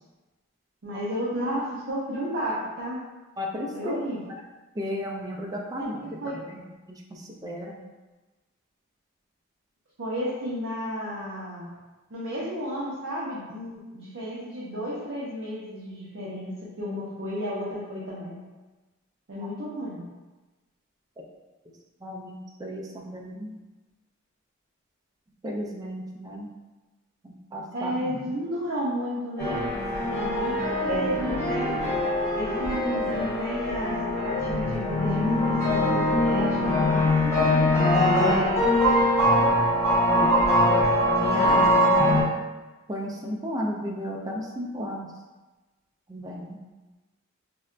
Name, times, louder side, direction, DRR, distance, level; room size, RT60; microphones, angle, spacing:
voice 1, 0.8-3.0 3.7-4.2 6.2-6.3 10.0-11.7 12.1-18.4 19.3-20.0 27.7-29.8 30.1-31.8 32.3-38.2, equal, 60° right, -7 dB, 0.6 m, -32 dB
voice 2, 3.4-4.0 4.8-7.8 19.4-19.5 21.7-21.8 22.0-23.6 25.4-26.5 27.2-28.3 30.9-31.2 36.7-36.8 40.1-40.4 41.1-42.3 42.9-45.1 46.1-46.6, equal, 15° right, -1 dB, 0.3 m, -34 dB
sound 1, 29.4-42.2, left 1 dB, 10° left, 0.9 m, -22 dB
4.0 x 2.1 x 2.4 m, 1.2 s
head